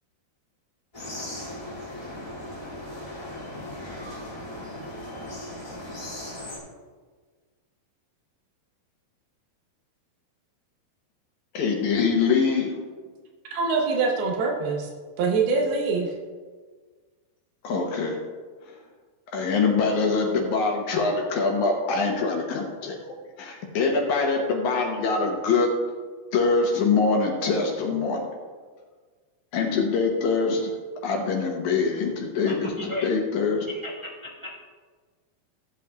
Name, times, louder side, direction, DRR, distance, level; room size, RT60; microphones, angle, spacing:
sound 1, 0.9-6.6, left 1 dB, 15° left, 1.4 m, -37 dB
voice 1, 11.5-12.7 17.6-18.2 19.3-25.7 26.3-28.3 29.5-30.7 31.0-33.7, left 4 dB, 70° left, 1 dB, 1.9 m, -24 dB
voice 2, 13.5-14.9 15.2-16.1, right 4 dB, 80° right, 0 dB, 2.8 m, -24 dB
voice 3, 32.4-33.1 33.8-34.5, left 1 dB, 40° right, -8 dB, 0.4 m, -34 dB
15.0 x 7.6 x 2.3 m, 1.5 s
omnidirectional pair, 4.4 m